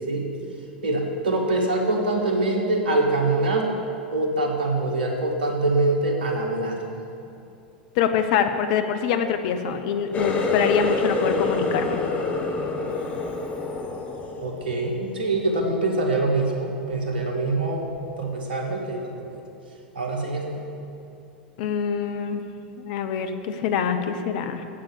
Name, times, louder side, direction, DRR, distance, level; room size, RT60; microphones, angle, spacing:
voice 1, 0.8-3.7 4.1-6.8 14.4-17.9 18.2-19.4 20.0-20.6, right 2 dB, 70° right, 1 dB, 1.9 m, -24 dB
voice 2, 8.0-12.0 21.6-22.4 22.8-24.6, left 7 dB, 55° left, 8 dB, 0.8 m, -24 dB
Water tap faucet, 10.1-15.6 16.0-16.5 16.9-17.2 18.0-18.1, left 3 dB, 25° left, 1.5 m, -27 dB
8.6 x 7.9 x 8.4 m, 2.6 s
figure-of-eight pair, 85°, 5 cm